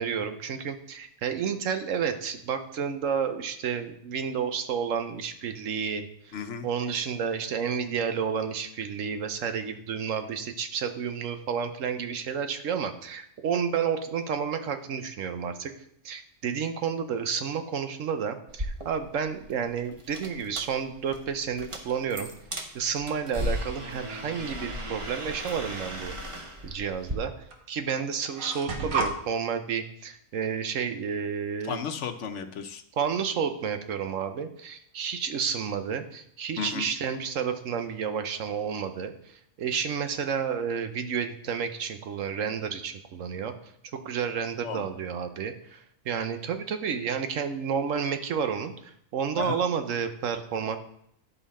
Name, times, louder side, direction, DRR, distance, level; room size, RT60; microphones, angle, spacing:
voice 1, 0.0-6.4 6.6-15.7 16.0-22.3 22.7-31.8 33.0-43.5 43.9-50.8, right 7 dB, 75° right, 8 dB, 1.1 m, -31 dB
voice 2, 6.3-6.7 31.6-32.8 36.6-36.9 44.6-44.9 49.4-49.6, left 7 dB, 65° left, 8 dB, 1.0 m, -34 dB
sound 1, 18.5-27.2, equal, 25° right, 0.9 m, -37 dB
sound 2, 24.8-25.3 26.5-26.6 27.5-27.6 27.9-29.2, right 3 dB, 90° right, 1.5 m, -32 dB
11.0 x 5.6 x 4.2 m, 0.71 s
omnidirectional pair, 1.4 m